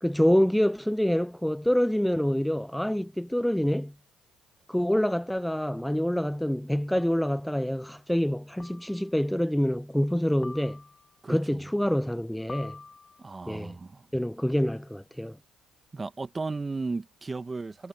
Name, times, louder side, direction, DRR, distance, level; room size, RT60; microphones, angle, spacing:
voice 1, 0.0-3.9 4.7-10.8 11.3-12.8 13.5-13.7 14.1-15.4, equal, 5° left, 0.5 m, -26 dB
sound 1, 5.4-5.5 7.0-7.3 8.6-9.2 10.4-11.2 12.5-13.4, left 4 dB, 30° left, 2.4 m, -47 dB
voice 2, 11.2-11.7 13.2-14.1 15.9-17.9, right 3 dB, 25° right, 2.0 m, -35 dB
hypercardioid pair, 55°, 0 cm